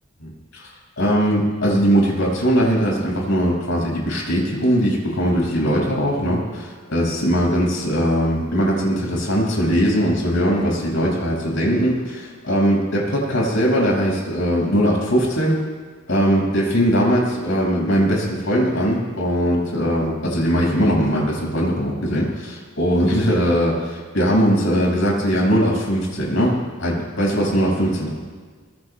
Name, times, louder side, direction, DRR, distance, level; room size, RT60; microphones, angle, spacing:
voice 1, 0.2-0.7 1.0-15.6 16.1-28.1, equal, 65° left, -3 dB, 5.5 m, -20 dB
24.0 x 20.5 x 2.2 m, 1.5 s
head